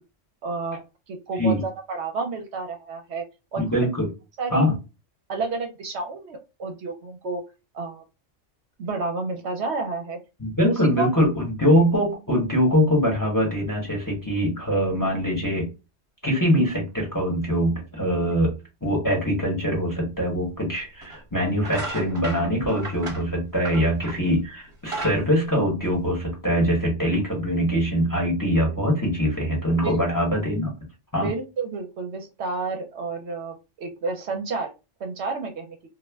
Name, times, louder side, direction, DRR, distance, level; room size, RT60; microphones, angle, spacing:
voice 1, 0.4-0.8 1.1-3.2 3.5-3.6 4.4-4.7 5.3-7.4 7.7-8.0 8.8-10.2 11.0-11.1 23.7-23.8 29.8-30.0 31.2-34.7 35.0-35.8, right 3 dB, 65° right, 4 dB, 0.8 m, -30 dB
voice 2, 3.6-4.1 4.5-4.7 10.4-15.7 16.2-18.5 18.8-30.7 31.1-31.3, equal, 20° left, -1 dB, 0.9 m, -23 dB
sound 1, 20.3-20.4 21.0-21.2 21.6-24.3 24.7-26.3, right 2 dB, 25° right, 1.0 m, -35 dB
2.4 x 2.1 x 3.3 m, 0.28 s
omnidirectional pair, 1.3 m